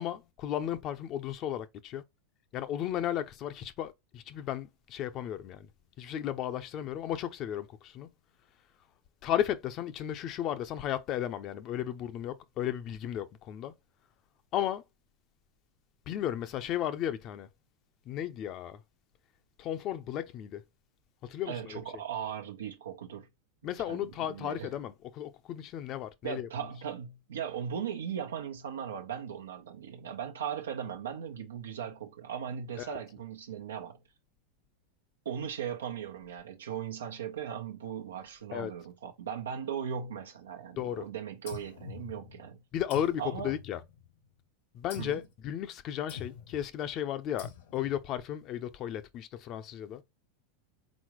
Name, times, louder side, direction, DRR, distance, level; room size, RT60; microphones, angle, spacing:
voice 1, 0.0-2.0 2.5-5.7 6.0-8.1 9.2-13.7 14.5-14.8 16.1-17.5 18.1-18.8 19.6-20.6 21.2-21.8 23.6-26.5 32.8-33.0 38.5-38.7 40.8-41.1 42.7-43.8 44.7-50.0, left 11 dB, 45° left, 0.6 m, -34 dB
voice 2, 21.4-23.3 23.9-24.7 26.2-34.0 35.2-42.6 43.2-43.5 45.0-45.2, right 8 dB, 85° right, 0.9 m, -38 dB
sound 1, 41.5-42.5 42.9-44.2 44.9-45.3 46.1-46.6 47.4-48.0, left 6 dB, 75° left, 1.4 m, -46 dB
4.1 x 3.9 x 3.1 m
hypercardioid pair, 105°, 0 cm